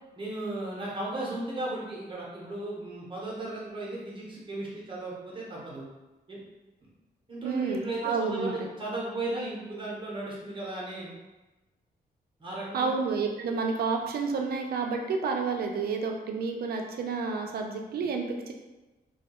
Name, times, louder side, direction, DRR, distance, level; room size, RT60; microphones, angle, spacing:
voice 1, 0.2-5.9 6.3-6.4 6.8-6.9 7.3-11.1 12.4-12.9, right 2 dB, 30° right, -5 dB, 0.7 m, -36 dB
voice 2, 7.4-8.7 12.7-18.5, right 4 dB, 65° right, 3 dB, 0.4 m, -30 dB
2.2 x 2.2 x 2.9 m, 1.1 s
cardioid pair, 120°, 17 cm